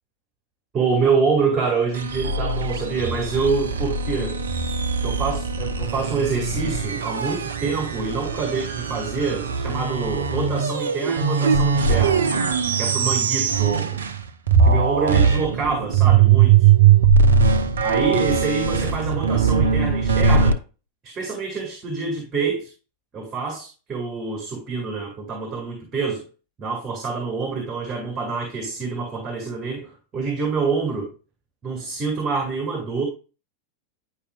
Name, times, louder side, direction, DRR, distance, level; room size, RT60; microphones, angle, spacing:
voice 1, 0.7-4.4 5.0-12.2 12.8-14.0 14.6-16.7 17.8-20.6 21.0-22.7 23.1-26.3 26.6-31.1 31.6-33.1, right 4 dB, 20° right, 1 dB, 2.2 m, -26 dB
sound 1, 1.9-14.2 14.5-20.5, right 6 dB, 65° right, 0.6 m, -20 dB
10.0 x 4.8 x 2.3 m, 0.33 s
figure-of-eight pair, 90°, 0 cm